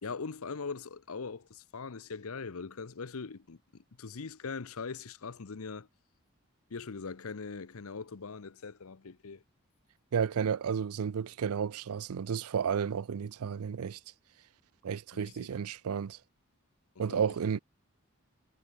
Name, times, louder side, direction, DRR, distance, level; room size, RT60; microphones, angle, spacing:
voice 1, 0.0-5.9 6.7-9.4 15.1-15.3 17.1-17.3, left 4 dB, 75° left, 0.8 m, -41 dB
voice 2, 10.1-14.0 14.8-16.2 17.0-17.6, right 7 dB, 85° right, 0.4 m, -32 dB
head